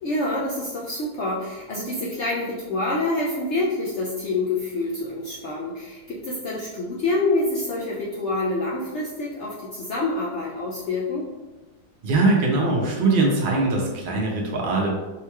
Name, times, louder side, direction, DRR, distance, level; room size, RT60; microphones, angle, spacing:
voice 1, 0.0-11.3, left 2 dB, 70° left, -4 dB, 0.6 m, -27 dB
voice 2, 12.0-14.9, right 3 dB, 50° right, -2 dB, 0.7 m, -21 dB
3.8 x 3.0 x 2.2 m, 1.2 s
omnidirectional pair, 1.7 m